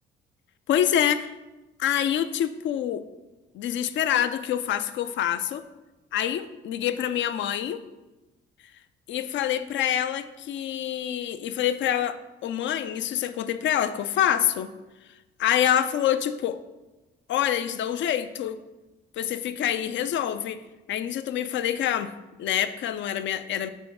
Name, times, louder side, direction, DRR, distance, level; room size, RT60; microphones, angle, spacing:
voice 1, 0.7-1.3 1.8-3.0 3.5-5.6 6.1-7.8 9.1-14.7 15.4-16.6 17.3-18.6 19.2-20.6 20.9-22.1 22.4-23.7, left 10 dB, 70° left, 12 dB, 0.4 m, -26 dB
5.6 x 4.3 x 4.7 m, 1.1 s
cardioid pair, 90°, 20 cm